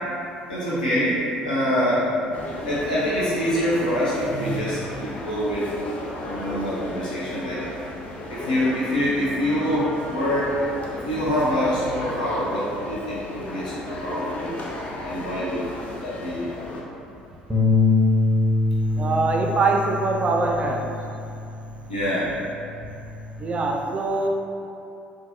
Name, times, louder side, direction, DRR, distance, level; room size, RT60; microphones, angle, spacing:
voice 1, 0.5-5.9 6.2-7.6 8.3-10.6 11.0-14.5 15.0-15.6 16.0-16.5 21.9-22.3, equal, 80° left, -10 dB, 0.6 m, -25 dB
sound 1, 2.3-16.8, left 1 dB, 35° left, 0.5 m, -35 dB
Bass guitar, 17.5-22.0 22.4-23.7, left 3 dB, 5° right, 0.7 m, -24 dB
voice 2, 19.0-20.8 23.4-24.3, right 3 dB, 30° right, 1 dB, 0.4 m, -23 dB
3.9 x 2.5 x 2.5 m, 2.7 s
figure-of-eight pair, 60°, 4 cm